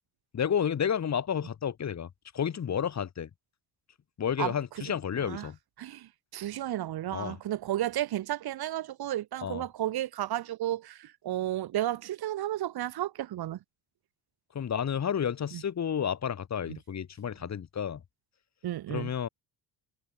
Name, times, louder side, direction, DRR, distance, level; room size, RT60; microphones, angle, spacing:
voice 1, 0.3-2.1 2.3-3.3 4.2-5.6 7.1-7.4 9.4-9.6 14.5-18.0 18.9-19.3, left 8 dB, 40° left, 2.0 m, -31 dB
voice 2, 5.8-13.6 15.5-15.6 16.7-16.8 18.6-19.1, right 13 dB, 65° right, 1.7 m, -33 dB
cardioid pair, 100°, 41 cm